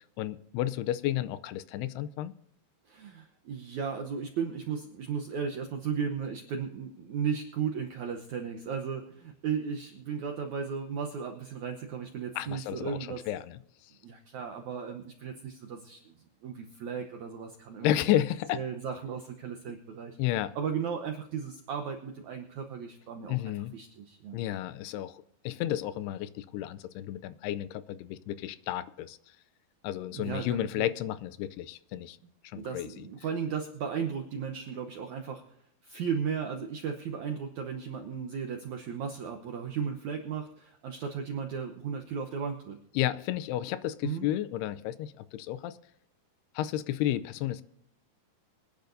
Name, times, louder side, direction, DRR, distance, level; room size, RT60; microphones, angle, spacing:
voice 1, 0.2-2.3 12.4-13.0 13.3-13.6 17.8-18.6 20.2-20.5 23.3-23.7 24.3-29.2 29.8-32.2 32.4-33.0 43.0-45.7 46.6-47.6, left 13 dB, 85° left, 15 dB, 2.6 m, -32 dB
voice 2, 2.9-13.2 14.0-16.1 16.4-18.2 18.5-24.4 30.1-30.9 32.5-35.4 35.8-42.8 44.0-44.3, right 6 dB, 80° right, 4 dB, 1.7 m, -35 dB
24.5 x 10.5 x 2.6 m, 0.77 s
omnidirectional pair, 4.7 m